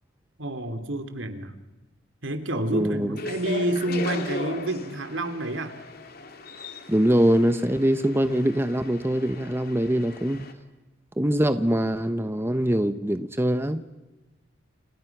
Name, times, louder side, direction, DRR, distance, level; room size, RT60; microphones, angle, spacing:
voice 1, 0.4-1.5 2.2-5.7, right 1 dB, 70° right, 8 dB, 3.0 m, -29 dB
voice 2, 2.7-3.1 6.9-10.5 11.2-13.8, equal, 10° right, 10 dB, 0.9 m, -23 dB
sound 1, 3.2-10.5, left 2 dB, 50° left, 2.7 m, -38 dB
30.0 x 28.5 x 6.0 m, 1.1 s
head